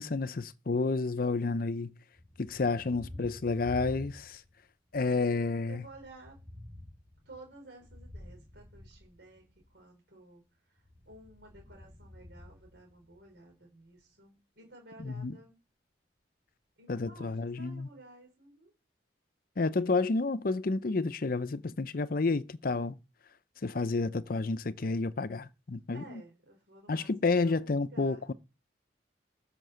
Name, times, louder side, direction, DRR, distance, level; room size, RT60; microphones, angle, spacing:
voice 1, 0.0-1.9 2.4-4.4 4.9-5.8 15.0-15.4 16.9-17.9 19.6-23.0 23.6-26.2 26.9-28.3, left 3 dB, 50° left, 0.6 m, -30 dB
Thunder, 2.1-4.6 4.9-9.7 10.8-13.4, left 1 dB, 20° right, 8.0 m, -50 dB
voice 2, 2.6-3.4 5.7-6.4 7.2-10.4 11.1-15.6 16.8-18.7 25.9-28.3, right 2 dB, 65° right, 4.7 m, -54 dB
14.0 x 6.6 x 6.7 m
head